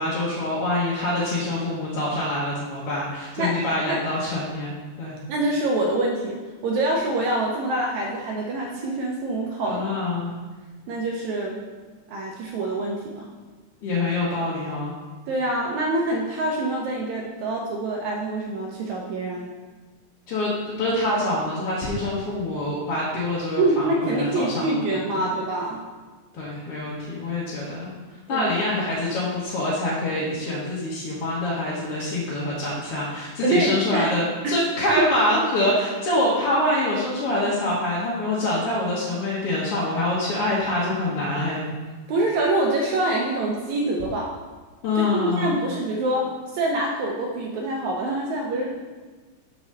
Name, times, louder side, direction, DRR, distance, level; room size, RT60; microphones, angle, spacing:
voice 1, 0.0-5.2 9.6-10.3 13.8-15.0 20.3-24.8 25.1-25.2 26.4-27.9 28.3-41.7 44.8-45.6, left 1 dB, 55° left, -7 dB, 1.8 m, -25 dB
voice 2, 5.3-9.8 10.9-11.6 12.1-13.3 15.3-19.5 23.6-25.8 28.3-28.5 33.4-34.1 34.4-34.6 35.0-35.1 42.1-44.3 45.0-48.7, right 2 dB, 75° right, -1 dB, 1.9 m, -25 dB
5.9 x 5.4 x 6.4 m, 1.3 s
omnidirectional pair, 3.6 m